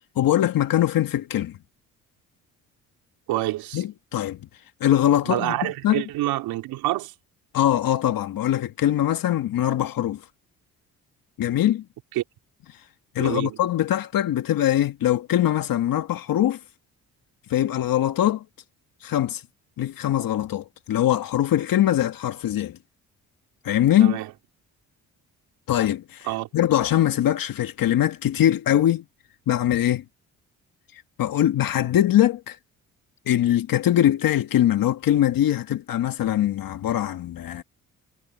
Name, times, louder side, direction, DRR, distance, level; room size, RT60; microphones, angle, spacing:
voice 1, 0.1-1.6 3.7-4.4 4.8-5.5 5.8-6.0 7.5-10.2 11.4-11.8 13.1-16.6 17.5-18.4 19.0-19.4 19.8-22.8 23.6-24.2 25.7-26.3 26.5-29.0 29.5-30.0 30.9-32.6 33.3-37.6, left 12 dB, 70° left, 1.6 m, -22 dB
voice 2, 3.3-3.8 5.2-7.1 12.2-12.3 13.2-13.6 24.0-24.3 26.3-26.5, right 16 dB, 90° right, 4.0 m, -27 dB
supercardioid pair, 65°, 36 cm